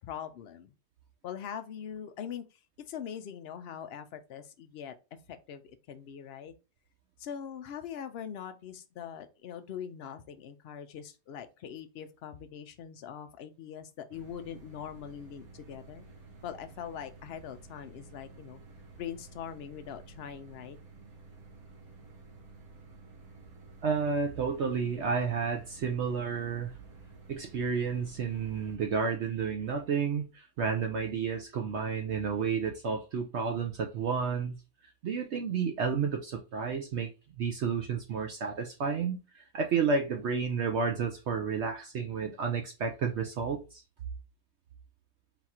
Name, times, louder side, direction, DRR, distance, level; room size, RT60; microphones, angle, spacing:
voice 1, 0.1-0.7 1.2-2.6 2.9-4.9 5.3-6.5 7.2-16.1 16.4-18.6 19.0-20.8, left 8 dB, 65° left, 0.6 m, -42 dB
sound 1, 14.1-28.8, right 3 dB, 85° right, 1.6 m, -52 dB
voice 2, 23.8-26.7 27.3-34.6 35.0-37.1 37.4-43.8, right 5 dB, 65° right, 0.8 m, -31 dB
3.9 x 2.4 x 4.2 m
omnidirectional pair, 1.5 m